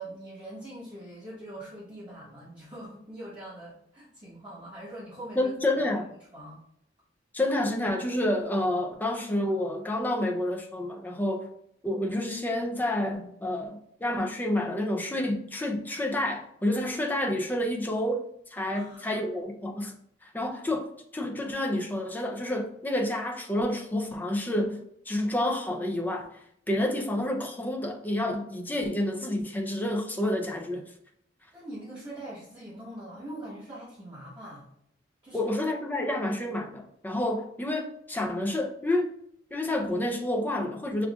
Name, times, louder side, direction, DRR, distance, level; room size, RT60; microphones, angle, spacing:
voice 1, 0.0-5.6 5.9-6.0 6.3-6.6 18.7-19.3 31.5-34.7 35.2-35.5, right 1 dB, 25° right, 1.2 m, -43 dB
voice 2, 5.4-6.1 7.3-11.5 11.8-18.2 18.5-19.9 20.2-20.9 21.1-30.9 35.3-39.1 39.5-41.1, left 1 dB, 10° left, 0.5 m, -29 dB
6.9 x 2.4 x 2.4 m
head